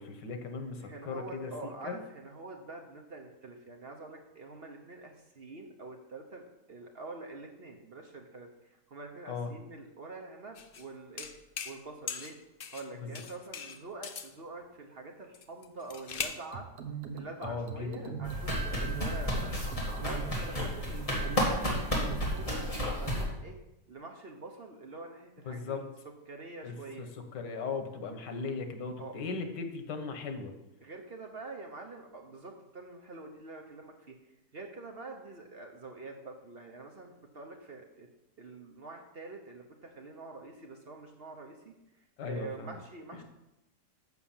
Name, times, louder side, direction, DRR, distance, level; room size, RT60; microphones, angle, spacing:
voice 1, 0.0-2.0 9.3-9.5 13.0-13.1 17.4-18.2 25.5-25.8 26.6-30.5 42.2-42.8 43.1-43.2, left 4 dB, 85° left, 6 dB, 1.7 m, -38 dB
voice 2, 0.8-11.3 11.6-12.4 12.7-16.7 17.1-19.5 20.0-22.7 23.0-23.6 23.9-25.9 26.3-27.1 29.0-29.2 30.8-34.2 34.5-38.1 38.4-43.2, right 3 dB, 45° right, 2 dB, 0.9 m, -46 dB
sound 1, 10.5-10.8 11.2-11.8 12.1-12.9 13.1-14.3 15.3-16.4, left 6 dB, 70° left, 0.5 m, -40 dB
sound 2, 16.5-22.7, right 6 dB, 65° right, 1.4 m, -42 dB
sound 3, 18.2-23.2, equal, 20° left, 2.1 m, -32 dB
7.1 x 6.2 x 7.2 m, 0.94 s
omnidirectional pair, 1.8 m